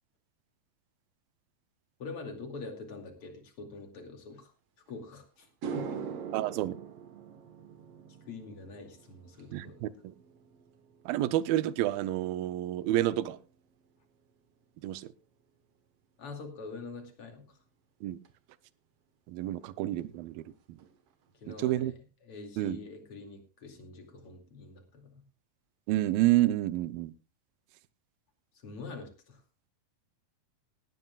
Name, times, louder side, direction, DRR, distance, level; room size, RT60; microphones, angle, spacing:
voice 1, 2.0-4.5 4.9-5.5 5.7-6.0 8.3-9.7 16.2-17.5 21.3-21.9 22.2-25.2 28.6-29.4, left 3 dB, 40° left, 4 dB, 3.1 m, -44 dB
sound 1, 4.9-5.0 5.4-13.9 14.2-14.6 18.2-18.3 20.0-20.1 20.4-20.5 20.8-21.3, right 7 dB, 55° right, 1.8 m, -44 dB
voice 2, 6.3-6.8 9.5-10.1 11.1-13.4 14.8-15.1 18.0-18.2 19.3-20.4 20.7-20.8 21.5-21.9 22.6-22.8 25.9-27.1, right 14 dB, 85° right, 15 dB, 2.5 m, -29 dB
18.5 x 13.5 x 2.4 m, 0.32 s
omnidirectional pair, 4.1 m